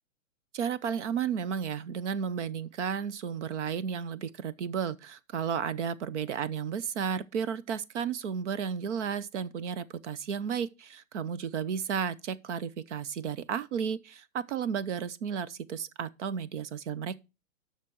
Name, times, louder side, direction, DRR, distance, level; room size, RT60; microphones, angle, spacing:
voice 1, 0.5-17.2, right 7 dB, 60° right, 0.9 m, -33 dB
7.3 x 6.1 x 6.8 m
hypercardioid pair, 155°, 40 cm